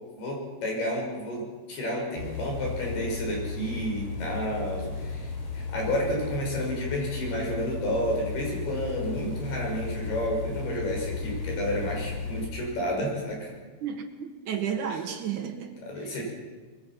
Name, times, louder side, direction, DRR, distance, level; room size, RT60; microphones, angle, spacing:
voice 1, 0.2-13.5 14.9-15.0 15.8-16.2, equal, 85° left, 7.9 m, -31 dB
sound 1, 2.2-12.5, left 4 dB, 45° left, 4.4 m, -35 dB
voice 2, 13.8-16.2, right 8 dB, 65° right, 2.4 m, -33 dB
23.5 x 22.5 x 6.0 m
omnidirectional pair, 4.4 m